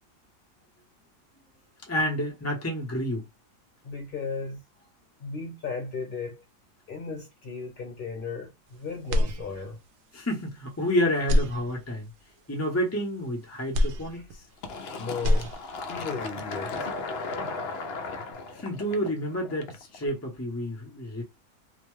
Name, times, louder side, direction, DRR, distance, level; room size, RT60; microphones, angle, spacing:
voice 1, 1.9-3.3 10.1-12.1 12.5-14.4 18.5-21.2, equal, 15° left, 0.5 m, -29 dB
voice 2, 3.8-4.6 5.2-6.4 6.9-9.8 14.1-14.2 15.0-15.5 15.9-16.9 17.2-17.6, left 4 dB, 40° left, 0.9 m, -36 dB
sound 1, 9.1-10.0 10.4-10.5 11.2-12.2 13.7-14.8 15.1-16.0, left 1 dB, 70° right, 0.8 m, -27 dB
Fill (with liquid), 14.6-20.0, left 3 dB, 80° left, 0.5 m, -36 dB
2.7 x 2.1 x 3.1 m
omnidirectional pair, 1.7 m